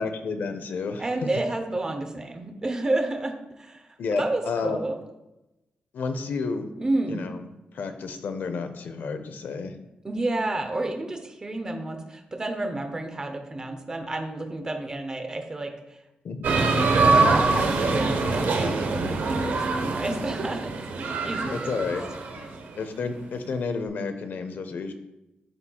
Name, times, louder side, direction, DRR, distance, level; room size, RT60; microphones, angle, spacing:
voice 1, 0.0-1.0 4.0-4.8 5.9-6.7 7.1-7.4 7.7-9.8 16.2-16.4 21.5-22.0 22.8-24.9, left 4 dB, 75° left, 8 dB, 0.6 m, -31 dB
voice 2, 1.0-5.0 6.8-7.3 10.0-16.0 17.3-22.0, right 2 dB, 20° right, 5 dB, 0.7 m, -31 dB
sound 1, 16.4-22.5, right 3 dB, 85° right, 0.9 m, -24 dB
11.0 x 4.3 x 2.3 m, 0.95 s
wide cardioid pair, 150°, 3 cm